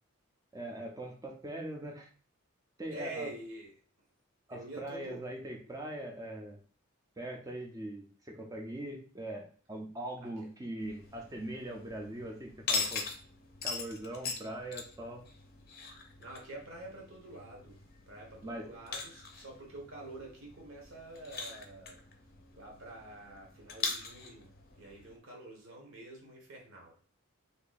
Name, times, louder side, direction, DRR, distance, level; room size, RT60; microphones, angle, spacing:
voice 1, 0.5-2.1 2.8-3.3 4.5-6.6 7.2-13.1 13.6-15.2 18.4-18.7, right 1 dB, 15° right, 1 dB, 0.5 m, -41 dB
voice 2, 2.9-3.7 4.5-5.2 10.2-10.3 16.2-17.8 18.1-22.0 22.5-24.5 24.8-27.0, right 2 dB, 65° right, 0 dB, 1.0 m, -47 dB
sound 1, 10.8-25.2, left 4 dB, 45° left, 0.6 m, -42 dB
2.7 x 2.7 x 3.9 m, 0.42 s
head